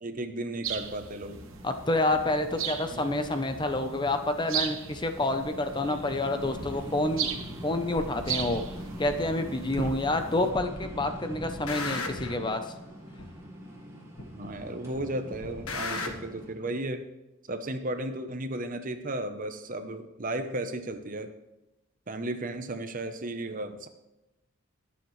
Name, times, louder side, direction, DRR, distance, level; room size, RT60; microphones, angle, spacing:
voice 1, 0.0-1.5 2.9-3.0 9.7-9.9 14.3-17.0 17.5-21.3 22.1-23.9, right 1 dB, 40° right, 8 dB, 0.8 m, -34 dB
sound 1, 0.6-10.5, right 8 dB, 65° right, 1.0 m, -38 dB
sound 2, 1.3-16.5, equal, 15° right, 1.6 m, -43 dB
voice 2, 1.6-7.3 7.6-8.6 9.0-12.6, left 2 dB, 20° left, 7 dB, 0.7 m, -28 dB
sound 3, 8.2-8.3 9.2-9.3 10.2-10.6 10.9-12.4 13.2-13.3 14.2-14.6 14.9-16.1, left 3 dB, 90° left, 1.5 m, -36 dB
21.0 x 7.2 x 3.2 m, 0.99 s
head